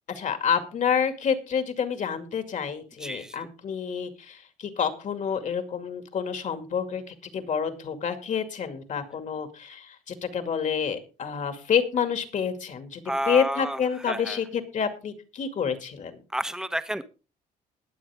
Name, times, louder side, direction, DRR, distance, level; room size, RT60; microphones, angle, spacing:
voice 1, 0.1-7.0 7.3-16.2, left 7 dB, 45° left, 8 dB, 2.3 m, -28 dB
voice 2, 3.0-3.5 13.0-14.4 16.3-17.0, right 1 dB, 5° right, 11 dB, 1.1 m, -31 dB
21.0 x 7.6 x 3.6 m, 0.34 s
cardioid pair, 110°, 17 cm